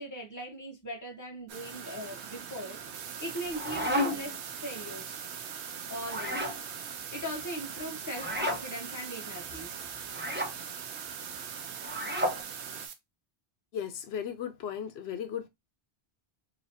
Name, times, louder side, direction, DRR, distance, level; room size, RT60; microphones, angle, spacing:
voice 1, 0.0-2.8 3.2-5.2 5.9-6.6 7.1-10.0, equal, 20° left, 1.0 m, -40 dB
sound 1, 1.5-12.9, right 7 dB, 90° right, 0.9 m, -44 dB
sound 2, 2.9-12.9, right 8 dB, 60° right, 0.6 m, -44 dB
sound 3, 3.3-4.4 6.0-6.6 8.1-8.6 10.1-10.5 11.8-12.4, equal, 10° right, 0.7 m, -32 dB
voice 2, 13.7-15.5, left 8 dB, 75° left, 0.8 m, -36 dB
4.0 x 2.7 x 2.6 m
omnidirectional pair, 1.1 m